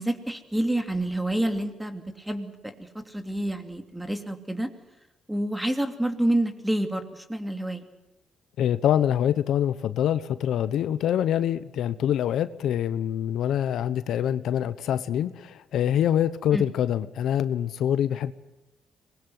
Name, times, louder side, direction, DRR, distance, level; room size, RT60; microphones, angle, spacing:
voice 1, 0.0-4.7 5.3-7.9 16.5-16.7, right 1 dB, 5° right, 7 dB, 2.8 m, -28 dB
voice 2, 8.6-18.3, left 10 dB, 75° left, 13 dB, 1.0 m, -25 dB
25.0 x 21.0 x 7.9 m, 0.94 s
cardioid pair, 90°, 0 cm